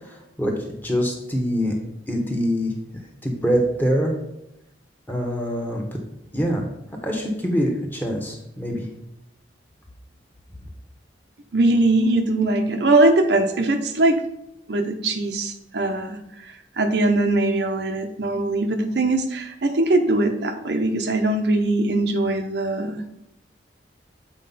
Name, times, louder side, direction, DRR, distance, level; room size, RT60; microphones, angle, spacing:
voice 1, 0.8-1.7 2.1-2.7 3.2-4.1 5.1-6.0 6.3-6.7 7.0-8.9, equal, 10° left, 0 dB, 1.2 m, -24 dB
voice 2, 11.5-14.2 14.7-16.2 16.8-23.0, right 2 dB, 65° right, 6 dB, 0.7 m, -21 dB
7.5 x 4.7 x 4.0 m, 0.82 s
head